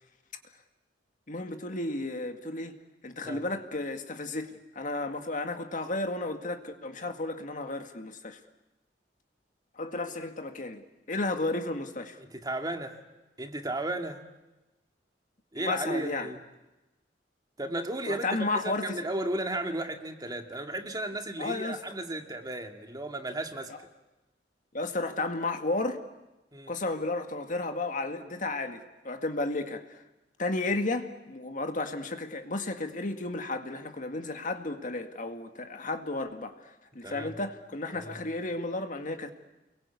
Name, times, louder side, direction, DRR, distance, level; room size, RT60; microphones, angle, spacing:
voice 1, 1.3-2.8 3.0-8.4 9.8-12.2 15.6-16.3 18.1-19.0 21.4-21.8 24.7-26.0 26.7-30.0 30.4-39.3, left 2 dB, 50° left, 6 dB, 2.0 m, -33 dB
voice 2, 12.2-13.0 13.4-14.2 15.5-16.4 17.6-23.7 26.5-26.7 37.0-37.4 37.9-38.2, right 1 dB, 25° right, 5 dB, 2.2 m, -34 dB
29.5 x 22.5 x 8.4 m, 1.0 s
head